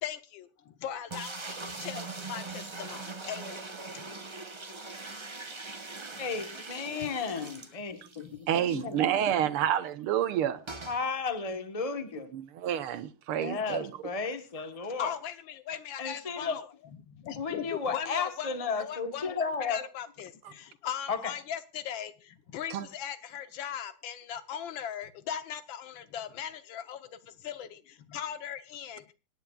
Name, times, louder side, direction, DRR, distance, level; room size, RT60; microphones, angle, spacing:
voice 1, 0.0-4.1 7.0-7.1 8.2-8.4 15.0-16.6 17.0-29.1, left 9 dB, 70° left, 1.6 m, -39 dB
sound 1, 1.1-8.3 8.6-8.7 8.9-9.0 10.7-11.0, right 3 dB, 35° right, 0.4 m, -41 dB
voice 2, 6.2-9.0 10.9-12.3 13.4-15.1 16.0-16.6 17.4-19.8 21.1-21.3, left 5 dB, 20° left, 1.0 m, -34 dB
voice 3, 8.5-10.6 12.3-13.9 22.7-22.9, right 10 dB, 85° right, 1.9 m, -29 dB
25.5 x 10.0 x 2.4 m
omnidirectional pair, 2.3 m